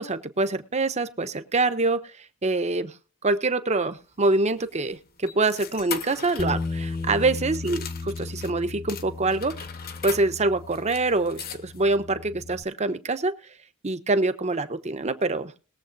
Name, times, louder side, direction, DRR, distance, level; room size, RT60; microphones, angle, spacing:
voice 1, 0.0-2.0 2.4-2.9 3.2-9.5 10.0-13.3 13.8-15.5, right 2 dB, 35° right, 11 dB, 0.9 m, -25 dB
sound 1, 3.8-8.5 8.9-12.0, left 8 dB, 50° left, 1.2 m, -40 dB
Bass guitar, 6.4-12.6, left 3 dB, 20° left, 0.4 m, -35 dB
21.5 x 7.7 x 2.6 m, 0.39 s
head